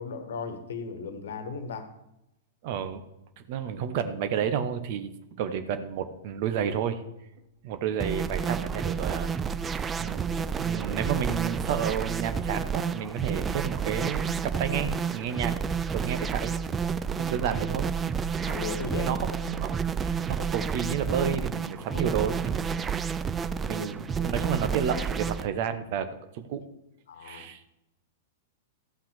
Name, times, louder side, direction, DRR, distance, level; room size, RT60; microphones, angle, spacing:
voice 1, 0.0-1.9 18.4-19.2 21.9-22.0 23.7-24.4 27.1-27.5, left 5 dB, 60° left, 10 dB, 1.4 m, -37 dB
voice 2, 2.6-3.0 3.5-5.1 5.4-7.0 7.6-9.3 10.0-16.5 17.2-17.9 19.0-22.9 23.7-26.1 26.3-26.6 27.2-27.6, right 8 dB, 45° right, 10 dB, 1.0 m, -31 dB
sound 1, 8.0-25.5, right 6 dB, 15° right, 0.4 m, -30 dB
13.5 x 5.9 x 6.5 m, 0.89 s
figure-of-eight pair, 100°, 0 cm